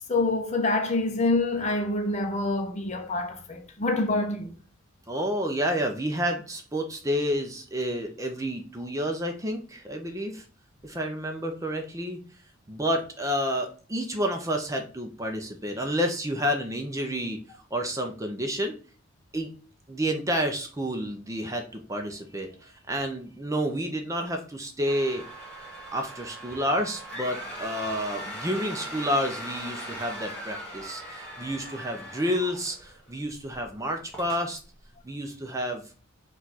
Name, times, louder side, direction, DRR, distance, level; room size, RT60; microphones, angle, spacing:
voice 1, 0.1-4.5, left 2 dB, 35° left, 0.5 m, -26 dB
voice 2, 5.1-10.4 10.8-12.2 12.7-17.4 17.7-18.8 19.3-19.5 19.9-25.2 25.9-34.6 35.0-35.8, equal, 15° right, 0.5 m, -30 dB
sound 1, 24.9-33.1 33.5-33.7 34.1-34.4, right 1 dB, 5° left, 1.0 m, -39 dB
4.5 x 2.4 x 3.9 m
head